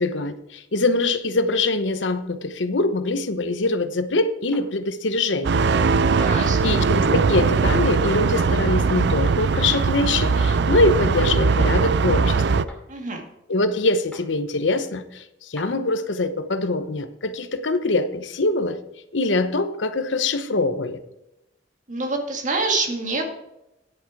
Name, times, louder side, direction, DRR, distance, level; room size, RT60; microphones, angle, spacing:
voice 1, 0.0-5.6 6.3-12.6 13.5-18.8 19.1-21.0, left 2 dB, 75° left, 10 dB, 0.9 m, -23 dB
sound 1, 4.5-4.7 6.2-6.4 8.4-8.5 9.7-9.9 11.2-11.4 12.7-12.8 14.1-14.3 15.6-15.7, left 1 dB, 5° left, 2.5 m, -41 dB
sound 2, 5.4-12.6, right 4 dB, 65° right, 0.5 m, -20 dB
voice 2, 6.1-6.7 12.9-13.2 21.9-23.3, right 3 dB, 45° right, 3 dB, 1.9 m, -26 dB
10.0 x 8.6 x 4.7 m, 0.90 s
head